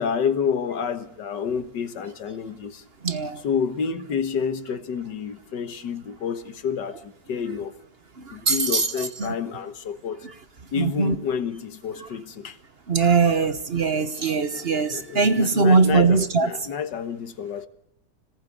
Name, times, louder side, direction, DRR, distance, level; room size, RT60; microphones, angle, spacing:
voice 1, 0.0-2.8 3.4-7.8 8.3-10.3 10.7-12.6 13.3-13.5 14.2-17.7, left 6 dB, 75° left, 1.9 m, -29 dB
voice 2, 3.0-3.4 8.2-9.3 10.8-11.1 12.9-16.5, right 4 dB, 40° right, 1.1 m, -21 dB
26.0 x 18.5 x 8.3 m
omnidirectional pair, 1.9 m